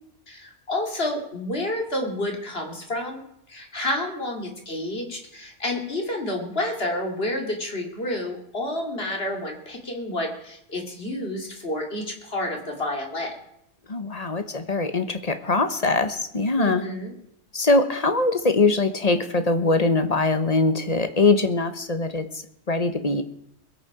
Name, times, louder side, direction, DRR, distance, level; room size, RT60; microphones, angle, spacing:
voice 1, 0.3-3.2 3.5-13.3 16.6-17.1, left 1 dB, 60° left, 2 dB, 2.7 m, -29 dB
voice 2, 13.9-16.8 17.5-23.2, left 3 dB, 35° left, 9 dB, 1.1 m, -22 dB
21.5 x 8.3 x 4.9 m, 0.77 s
omnidirectional pair, 1.2 m